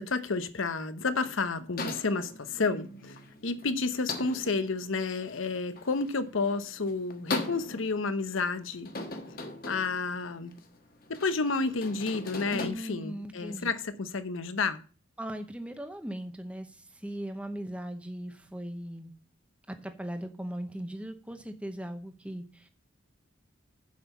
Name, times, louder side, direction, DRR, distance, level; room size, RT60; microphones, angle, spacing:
voice 1, 0.0-3.2 3.4-8.9 9.7-10.5 11.1-14.8, left 4 dB, 75° left, 0.9 m, -31 dB
sound 1, 1.8-12.7, left 2 dB, 45° left, 1.4 m, -40 dB
voice 2, 12.5-13.7 15.2-19.1 19.7-22.7, right 1 dB, 5° right, 0.8 m, -39 dB
7.6 x 5.7 x 7.0 m
head